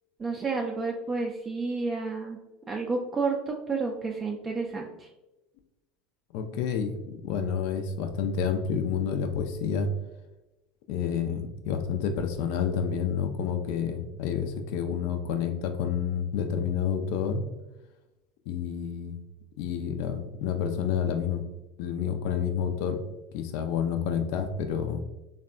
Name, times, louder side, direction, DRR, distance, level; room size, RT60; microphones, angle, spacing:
voice 1, 0.2-2.4 2.7-5.1, right 4 dB, 30° right, 0 dB, 0.3 m, -30 dB
voice 2, 6.3-9.9 10.9-17.4 18.5-19.1 19.6-21.4 21.8-23.0 23.3-25.0, left 7 dB, 65° left, 7 dB, 0.3 m, -29 dB
3.3 x 2.1 x 2.4 m, 1.0 s
hypercardioid pair, 75°, 0 cm